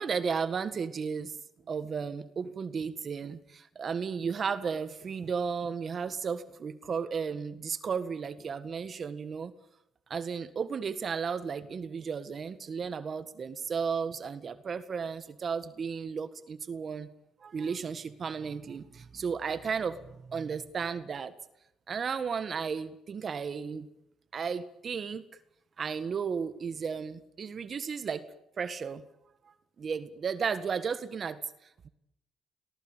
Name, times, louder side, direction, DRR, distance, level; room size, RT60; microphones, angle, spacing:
voice 1, 0.0-1.4 1.7-9.5 10.1-17.1 17.4-21.3 21.9-23.9 24.3-25.2 25.8-28.2 28.6-29.0 29.8-31.9, right 6 dB, 45° right, 12 dB, 1.7 m, -34 dB
26.0 x 18.5 x 9.1 m, 0.85 s
cardioid pair, 90°, 0 cm